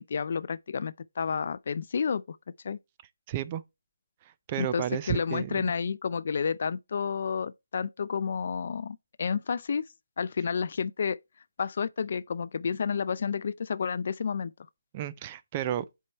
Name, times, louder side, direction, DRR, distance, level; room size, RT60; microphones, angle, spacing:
voice 1, 0.0-2.4 2.6-2.8 4.6-9.8 10.2-11.2 11.6-14.5, left 6 dB, 45° left, 0.3 m, -30 dB
voice 2, 3.3-3.6 4.5-5.7 14.9-15.9, right 11 dB, 20° right, 0.4 m, -32 dB
7.4 x 4.6 x 4.1 m
figure-of-eight pair, 160°, 0 cm